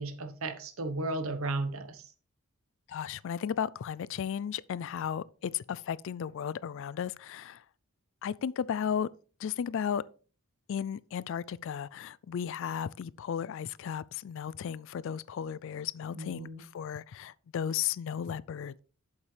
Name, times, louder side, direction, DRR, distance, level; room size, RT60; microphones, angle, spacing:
voice 1, 0.0-2.0 16.1-16.6, right 2 dB, 65° right, 1.1 m, -34 dB
voice 2, 2.9-7.6 8.2-9.1 9.4-10.0 10.7-18.8, left 8 dB, 60° left, 0.3 m, -35 dB
8.3 x 7.2 x 3.3 m
head